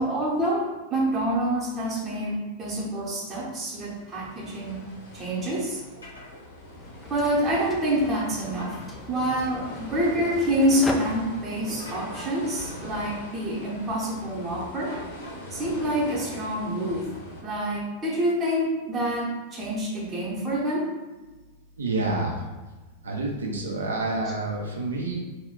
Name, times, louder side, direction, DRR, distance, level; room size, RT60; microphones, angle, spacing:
voice 1, 0.0-4.8 5.1-5.8 7.1-8.7 9.1-14.9 15.5-17.1 17.4-20.8 24.2-24.3, equal, 20° right, -5 dB, 0.7 m, -27 dB
sound 1, 3.6-17.4, left 1 dB, 50° left, 0.6 m, -42 dB
sound 2, 6.0-6.3 8.5-8.8 11.8-12.4 14.9-15.6, equal, 85° left, 0.9 m, -43 dB
sound 3, 6.8-12.0, left 2 dB, 10° left, 0.3 m, -38 dB
voice 2, 21.8-22.4 23.0-25.2, right 2 dB, 70° right, 0 dB, 0.4 m, -28 dB
2.3 x 2.1 x 3.6 m, 1.2 s
figure-of-eight pair, 90°, 0 cm